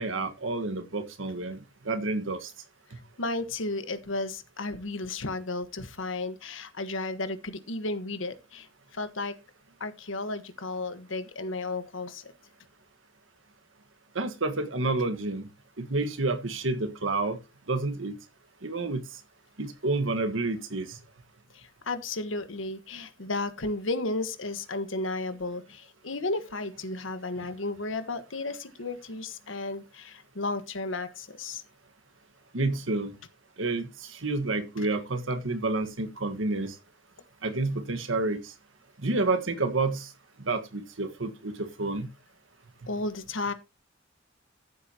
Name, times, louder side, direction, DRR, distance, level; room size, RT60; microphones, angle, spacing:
voice 1, 0.0-1.6 1.8-2.5 2.9-3.0 14.1-15.5 15.8-17.4 17.7-18.2 18.6-19.0 19.6-21.0 27.4-27.5 32.5-33.1 33.6-36.7 37.4-38.5 39.0-40.1 40.4-42.1, right 3 dB, 80° right, 1.6 m, -29 dB
voice 2, 3.2-8.7 8.9-9.3 9.8-12.2 21.5-31.6 42.9-43.5, left 2 dB, 85° left, 1.4 m, -33 dB
14.0 x 8.1 x 2.9 m
head